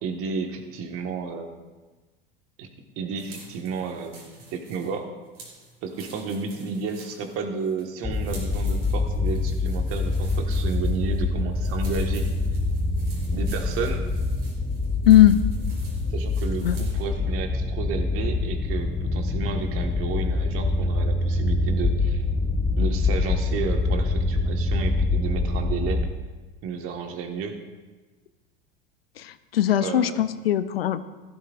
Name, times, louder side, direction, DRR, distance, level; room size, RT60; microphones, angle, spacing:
voice 1, 0.0-1.5 2.6-2.7 2.9-5.1 5.8-12.3 13.3-14.0 16.1-22.2 22.8-26.0 26.6-27.5 29.8-30.2, right 5 dB, 50° right, 4 dB, 1.6 m, -32 dB
sound 1, 3.2-17.1, right 3 dB, 85° right, 4.1 m, -49 dB
sound 2, 8.0-26.1, left 3 dB, 15° left, 0.7 m, -25 dB
voice 2, 15.1-15.4 16.6-16.8 29.2-31.0, left 12 dB, 80° left, 13 dB, 0.6 m, -19 dB
15.0 x 13.0 x 2.5 m, 1.2 s
hypercardioid pair, 85°, 29 cm